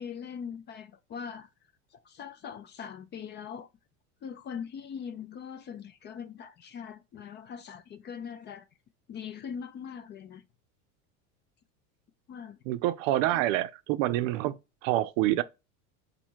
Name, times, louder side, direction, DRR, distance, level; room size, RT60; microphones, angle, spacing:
voice 1, 0.0-1.5 1.9-3.7 4.2-8.7 9.1-10.4 12.3-12.6, left 7 dB, 25° left, 0.4 m, -41 dB
voice 2, 12.7-15.4, right 15 dB, 65° right, 0.6 m, -27 dB
4.3 x 2.8 x 4.4 m
supercardioid pair, 120°, 41 cm